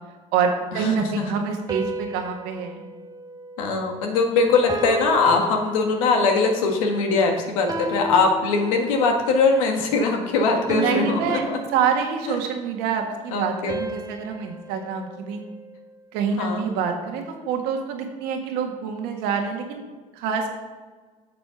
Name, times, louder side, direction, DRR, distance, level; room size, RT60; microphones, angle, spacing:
voice 1, 0.3-2.8 10.7-11.4 11.7-15.4 16.1-19.8 20.1-20.5, right 6 dB, 80° right, 3 dB, 1.5 m, -26 dB
sound 1, 1.7-4.2 4.7-6.4 7.7-9.2 10.7-12.6 13.7-16.0, right 2 dB, 20° right, 0.9 m, -35 dB
voice 2, 3.6-11.6 12.3-12.4 13.3-13.8 16.4-16.6, left 4 dB, 90° left, 3 dB, 1.6 m, -21 dB
8.3 x 6.9 x 5.7 m, 1.4 s
supercardioid pair, 70°, 17 cm